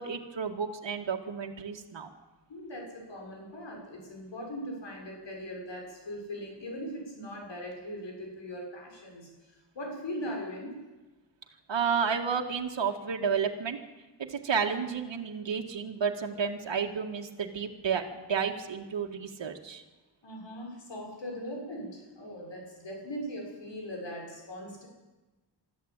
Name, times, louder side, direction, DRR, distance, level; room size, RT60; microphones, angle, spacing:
voice 1, 0.0-2.1 11.7-13.8 14.3-19.8, right 6 dB, 85° right, 2 dB, 1.9 m, -31 dB
voice 2, 2.5-9.3 9.7-10.8 20.2-24.9, equal, 80° left, 0 dB, 6.8 m, -40 dB
24.5 x 13.5 x 9.0 m, 1.1 s
wide cardioid pair, 150°, 43 cm